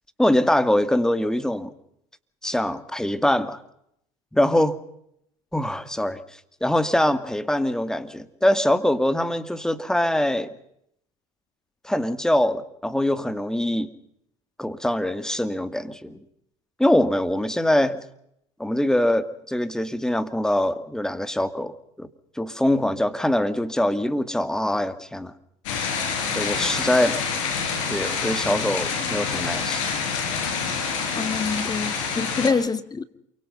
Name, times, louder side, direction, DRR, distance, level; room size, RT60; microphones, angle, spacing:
voice 1, 0.2-1.7 2.4-3.6 4.3-4.8 5.5-6.2 6.6-10.5 11.8-13.9 14.6-16.2 16.8-18.0 18.6-22.1 22.4-25.3 26.4-27.2 27.9-29.8 32.4-32.5, left 1 dB, 5° left, 11 dB, 2.2 m, -23 dB
sound 1, 25.7-32.5, left 5 dB, 80° left, 6.0 m, -27 dB
voice 2, 31.1-33.0, left 5 dB, 25° left, 12 dB, 2.0 m, -26 dB
28.5 x 24.0 x 5.6 m, 0.74 s
hypercardioid pair, 80°, 16 cm